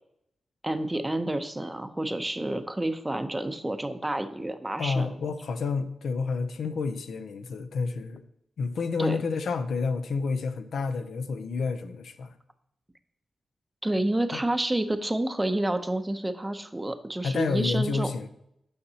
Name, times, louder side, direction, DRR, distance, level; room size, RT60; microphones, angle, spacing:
voice 1, 0.6-5.1 9.0-9.2 13.8-18.1, right 1 dB, 10° right, 9 dB, 0.6 m, -29 dB
voice 2, 4.8-8.2 8.6-12.3 14.3-14.4 17.2-18.3, left 4 dB, 80° left, 10 dB, 0.6 m, -29 dB
9.6 x 5.8 x 2.8 m, 0.76 s
wide cardioid pair, 110°, 0 cm